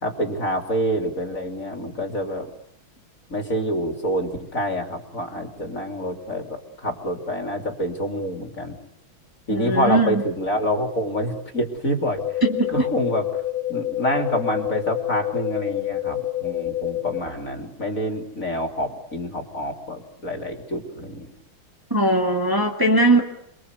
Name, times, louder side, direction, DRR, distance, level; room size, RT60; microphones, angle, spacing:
voice 1, 0.0-2.5 3.3-8.8 9.5-12.4 12.7-13.4 13.7-21.3, equal, 40° left, 4 dB, 3.5 m, -27 dB
voice 2, 9.5-10.2 12.4-12.7 21.9-23.2, right 2 dB, 10° right, 1 dB, 2.4 m, -19 dB
sound 1, 12.2-17.2, left 14 dB, 80° left, 2.2 m, -27 dB
28.5 x 22.5 x 8.3 m, 0.76 s
omnidirectional pair, 2.3 m